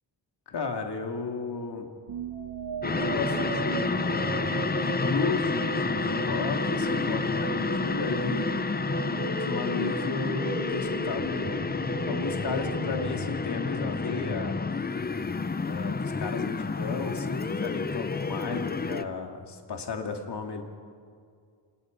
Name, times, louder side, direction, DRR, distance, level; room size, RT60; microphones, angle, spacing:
voice 1, 0.5-1.9 3.0-4.3 4.8-8.5 9.2-11.7 12.1-14.6 15.6-20.6, left 4 dB, 60° left, 3 dB, 2.5 m, -34 dB
sound 1, 2.1-14.1, right 9 dB, 65° right, 1.1 m, -37 dB
sound 2, 2.8-19.0, left 4 dB, 20° left, 0.6 m, -30 dB
29.0 x 26.0 x 5.3 m, 2.2 s
wide cardioid pair, 160°, 45 cm